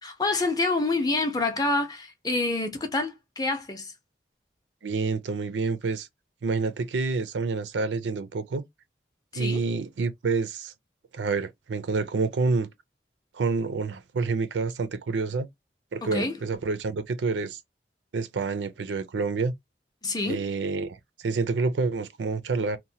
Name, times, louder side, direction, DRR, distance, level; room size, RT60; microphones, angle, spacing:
voice 1, 0.0-3.9 9.3-9.6 16.0-16.4 20.0-20.5, left 2 dB, 20° left, 0.5 m, -27 dB
voice 2, 4.8-6.1 6.4-8.6 9.3-10.7 11.1-12.7 13.3-15.5 15.9-17.6 18.1-19.5 20.3-21.0 21.2-22.8, right 4 dB, 90° right, 0.4 m, -28 dB
2.9 x 2.1 x 2.7 m
head